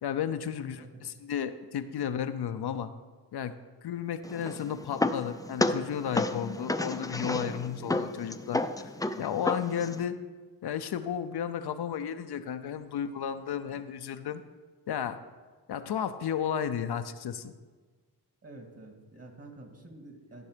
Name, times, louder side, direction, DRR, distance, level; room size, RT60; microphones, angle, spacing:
voice 1, 0.0-2.9 3.3-3.5 3.8-8.9 9.2-10.2 10.6-14.4 14.9-15.2 15.7-17.5, left 8 dB, 75° left, 9 dB, 0.6 m, -33 dB
voice 2, 0.6-1.1 18.4-20.5, right 2 dB, 40° right, 3 dB, 2.2 m, -48 dB
sound 1, 4.2-10.0, left 2 dB, 10° left, 0.5 m, -32 dB
13.5 x 5.5 x 5.1 m, 1.4 s
cardioid pair, 55°, 39 cm